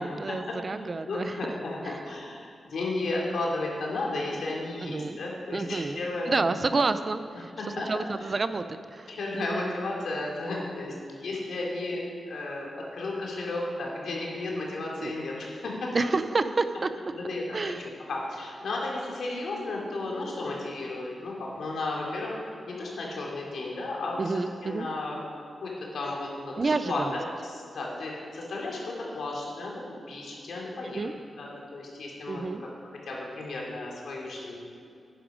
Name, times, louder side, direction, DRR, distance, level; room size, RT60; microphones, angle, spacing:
voice 1, 0.0-1.4 1.9-2.0 4.8-5.2 5.5-7.5 7.9-9.7 15.0-15.1 15.9-16.9 17.5-17.9 24.2-24.9 26.6-27.2 30.9-31.1 32.3-32.6, right 3 dB, 35° right, 11 dB, 0.5 m, -29 dB
voice 2, 1.1-6.4 7.3-7.4 7.8-8.3 9.1-16.1 17.1-24.3 24.6-25.2 25.6-29.8 30.1-31.1 31.4-34.6, left 2 dB, 80° left, -2 dB, 2.8 m, -34 dB
11.0 x 10.0 x 5.0 m, 2.5 s
wide cardioid pair, 115°, 0 cm